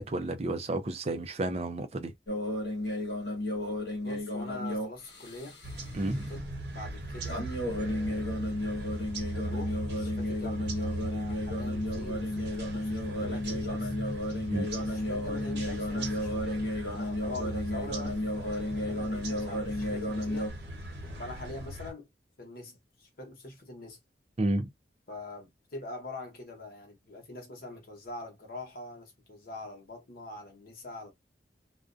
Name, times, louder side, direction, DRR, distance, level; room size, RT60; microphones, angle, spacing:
voice 1, 0.0-2.1 5.9-6.3 14.5-14.7 24.4-24.7, right 2 dB, 35° right, 0.5 m, -31 dB
sound 1, 2.3-5.8 7.3-20.5, left 1 dB, 80° left, 1.2 m, -33 dB
voice 2, 4.0-5.6 6.0-6.4 6.7-8.4 9.3-13.9 14.8-20.5 21.2-22.1 22.4-24.0 25.1-31.1, left 2 dB, 55° left, 1.0 m, -44 dB
sound 2, 5.6-21.9, right 1 dB, 75° right, 1.0 m, -39 dB
2.4 x 2.1 x 2.5 m
head